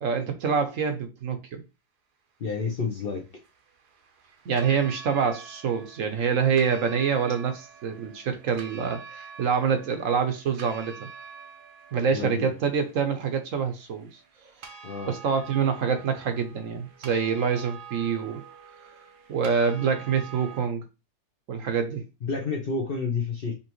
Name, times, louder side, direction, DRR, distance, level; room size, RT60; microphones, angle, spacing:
voice 1, 0.0-1.6 4.5-11.1 11.9-14.1 15.1-18.4 19.3-20.8 21.5-22.0, right 6 dB, 65° right, 1.0 m, -26 dB
voice 2, 2.4-3.3 12.1-12.6 14.8-15.1 22.2-23.5, left 4 dB, 50° left, 0.7 m, -30 dB
sound 1, 2.7-20.7, right 6 dB, 85° right, 1.4 m, -47 dB
5.4 x 3.0 x 3.0 m
omnidirectional pair, 1.7 m